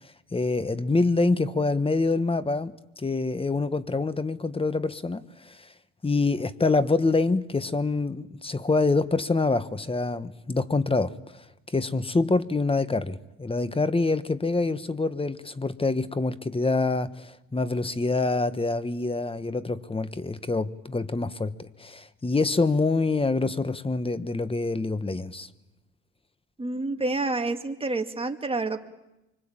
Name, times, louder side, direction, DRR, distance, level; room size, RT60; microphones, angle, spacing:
voice 1, 0.3-5.7 6.0-25.5, left 3 dB, 20° left, 1.3 m, -26 dB
voice 2, 26.6-28.8, right 3 dB, 20° right, 2.4 m, -28 dB
25.0 x 24.5 x 8.9 m
cardioid pair, 90°, 30 cm